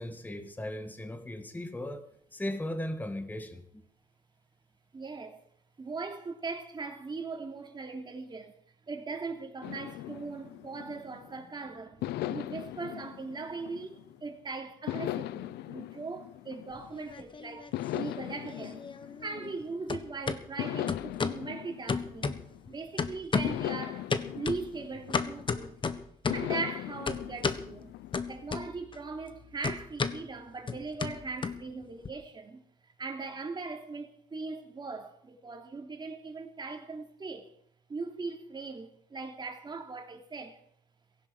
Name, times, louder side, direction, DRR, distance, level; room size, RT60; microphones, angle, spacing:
voice 1, 0.0-3.8, left 1 dB, 10° left, 1.8 m, -37 dB
voice 2, 4.9-5.4 5.8-8.5 8.9-18.8 19.2-22.4 22.7-25.8 26.3-27.9 28.3-32.6 33.0-37.5 37.9-40.6, right 4 dB, 25° right, 3.2 m, -39 dB
sound 1, 9.6-11.4 12.0-14.3 14.9-17.1 17.7-20.0 20.6-22.8 23.4-25.7 26.3-28.6, left 14 dB, 80° left, 0.7 m, -39 dB
sound 2, 16.8-17.7 18.0-19.6 19.9-20.4 20.9-21.4 21.9-22.7 23.0-23.7 24.1-26.5 27.1-27.7 28.1-29.0 29.2-32.1, left 5 dB, 30° left, 1.4 m, -33 dB
17.0 x 16.0 x 5.0 m
cardioid pair, 110°, 17 cm